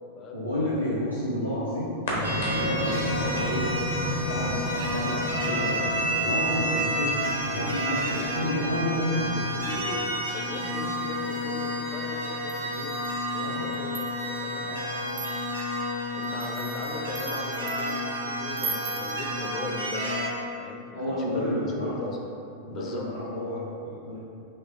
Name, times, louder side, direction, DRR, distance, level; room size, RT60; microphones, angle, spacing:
voice 1, 0.3-5.8 6.1-9.3 13.3-13.7 14.6-15.2 20.9-22.0 22.6-24.2, left 1 dB, 90° left, -11 dB, 0.7 m, -31 dB
sound 1, 2.0-10.1, equal, 65° left, 1.0 m, -34 dB
sound 2, 2.2-20.3, equal, 80° right, 0.8 m, -30 dB
voice 2, 7.9-8.5 8.9-10.0 10.3-13.0 13.3-14.7 16.1-20.1 20.6-22.2 22.7-23.0, left 2 dB, 30° left, 1 dB, 0.6 m, -38 dB
sound 3, 12.5-13.2 13.7-14.4 15.1-15.6 16.2-18.0 18.5-19.2, right 5 dB, 40° right, 0.6 m, -38 dB
5.4 x 3.0 x 2.7 m, 2.6 s
figure-of-eight pair, 90°, 0 cm